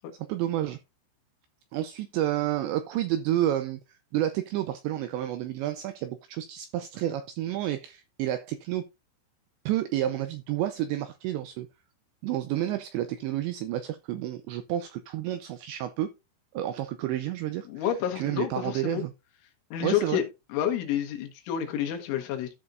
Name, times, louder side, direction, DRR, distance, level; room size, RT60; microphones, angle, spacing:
voice 1, 0.3-0.8 1.7-3.8 4.1-8.9 9.7-11.7 12.2-16.1 16.5-17.9 18.2-19.1 19.8-20.2, right 13 dB, 85° right, 2.5 m, -30 dB
voice 2, 17.7-19.0 19.7-20.2 20.5-22.6, left 10 dB, 75° left, 3.7 m, -29 dB
13.5 x 5.4 x 2.6 m
omnidirectional pair, 5.8 m